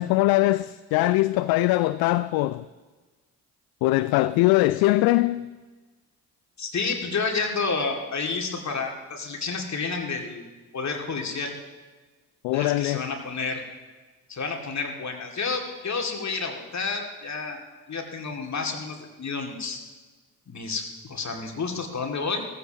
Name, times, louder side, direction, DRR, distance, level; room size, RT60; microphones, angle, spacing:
voice 1, 0.0-2.6 3.8-5.5 12.4-13.0, left 17 dB, 50° left, 0.5 m, -21 dB
voice 2, 6.6-10.5 10.7-11.5 12.5-13.6 14.3-17.6 17.9-19.8 20.5-22.5, left 4 dB, 35° left, 2.3 m, -30 dB
18.5 x 15.0 x 3.0 m
figure-of-eight pair, 40°, 48 cm